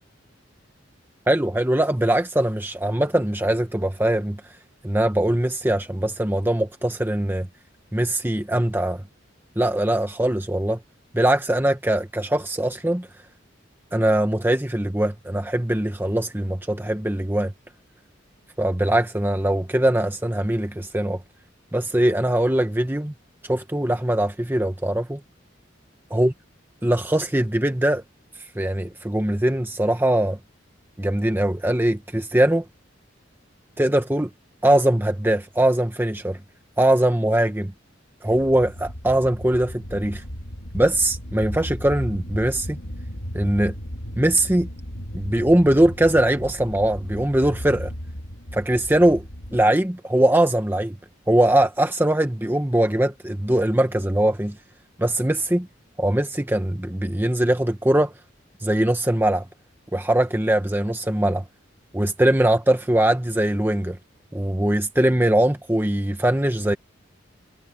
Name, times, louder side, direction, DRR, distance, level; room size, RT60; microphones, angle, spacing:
voice 1, 1.3-4.4 4.8-7.5 7.9-9.0 9.6-10.8 11.1-13.1 13.9-17.5 18.6-21.2 21.7-23.1 23.4-25.2 26.1-26.3 26.8-28.0 28.5-30.4 31.0-32.6 33.8-34.3 34.6-36.4 36.8-37.7 38.2-40.2 40.7-42.8 43.3-43.7 44.2-44.7 45.1-47.9 48.5-49.2 49.5-51.0 51.3-54.6 55.0-55.7 56.0-58.1 58.6-59.4 59.9-61.4 61.9-64.0 64.3-66.8, right 1 dB, 10° right, 1.0 m, -21 dB
sound 1, 38.3-49.6, equal, 80° left, 2.8 m, -35 dB
head